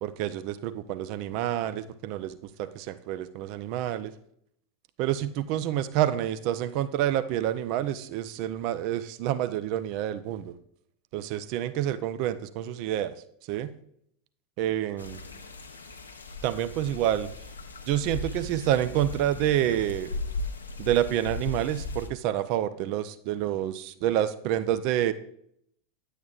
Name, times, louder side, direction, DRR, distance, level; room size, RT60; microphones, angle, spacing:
voice 1, 0.0-4.1 5.0-10.6 11.1-13.1 13.5-13.7 14.6-15.2 16.4-17.3 17.9-20.1 20.8-25.1, right 12 dB, 50° right, 13 dB, 0.5 m, -28 dB
sound 1, 15.0-22.1, left 3 dB, 85° left, 0.7 m, -37 dB
9.5 x 8.1 x 2.4 m, 0.69 s
figure-of-eight pair, 85°, 0 cm